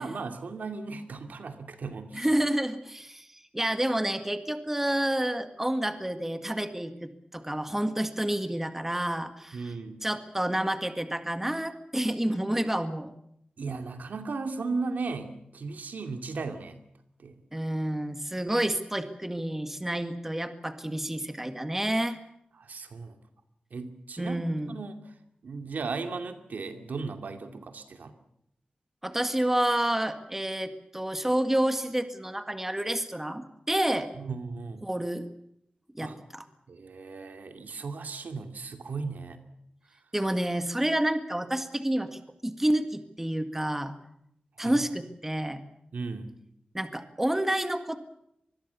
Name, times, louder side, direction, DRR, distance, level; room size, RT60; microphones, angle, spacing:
voice 1, 0.0-2.3 9.5-10.0 13.6-16.8 17.2-17.4 22.6-23.2 23.7-24.4 24.7-25.0 25.4-28.1 34.2-34.8 36.0-36.2 36.7-39.4 44.6-44.9 45.9-46.3, right 4 dB, 85° right, 7 dB, 2.5 m, -36 dB
voice 2, 2.1-9.7 10.0-13.1 17.5-22.2 24.2-24.8 29.0-34.1 34.8-35.3 35.9-36.4 40.1-43.9 44.6-45.6 46.7-48.0, right 1 dB, 10° right, 9 dB, 1.8 m, -29 dB
25.0 x 21.0 x 7.1 m, 0.76 s
wide cardioid pair, 110°, 3 cm